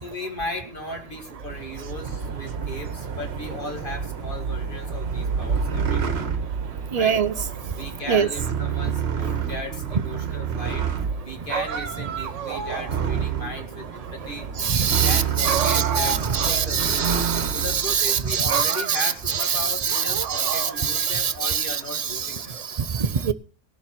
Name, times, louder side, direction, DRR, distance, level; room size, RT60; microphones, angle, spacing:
voice 1, 0.0-6.0 7.0-7.2 7.7-10.8 11.2-14.5 14.8-17.1 17.5-22.5, left 1 dB, 45° left, 3 dB, 2.5 m, -36 dB
sound 1, 1.3-18.1, right 7 dB, 60° right, 1.3 m, -29 dB
voice 2, 6.9-7.3 8.1-8.3 14.6-22.4 22.9-23.3, right 7 dB, 40° right, 12 dB, 0.7 m, -24 dB
sound 2, 11.5-13.3 15.4-16.6 16.9-17.0 17.9-18.2 18.5-19.5 19.9-21.1, right 6 dB, 80° right, 1.3 m, -30 dB
18.5 x 7.1 x 6.0 m, 0.39 s
omnidirectional pair, 1.3 m